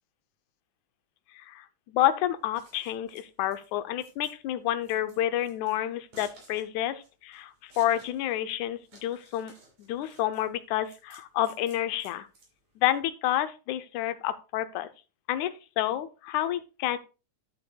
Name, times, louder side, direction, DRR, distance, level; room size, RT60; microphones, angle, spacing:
voice 1, 1.3-9.5 9.8-12.3 12.8-14.9 15.3-17.0, left 13 dB, 80° left, 11 dB, 2.1 m, -29 dB
Scissors, 2.4-13.0, right 2 dB, 60° right, 4.6 m, -56 dB
11.0 x 8.4 x 2.3 m, 0.31 s
omnidirectional pair, 3.4 m